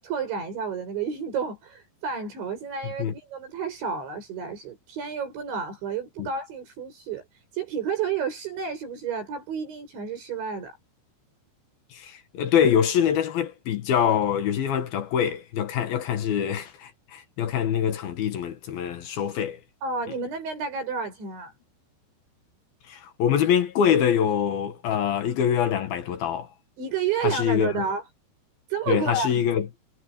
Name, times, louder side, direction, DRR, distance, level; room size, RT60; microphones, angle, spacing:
voice 1, 0.0-10.7 19.8-21.5 26.8-28.0 28.7-29.3, right 6 dB, 90° right, 10.5 m, -30 dB
voice 2, 2.8-3.1 6.2-6.3 11.9-19.6 20.1-20.2 22.9-26.5 27.2-27.8 28.9-29.7, left 8 dB, 65° left, 3.0 m, -24 dB
omnidirectional pair, 5.1 m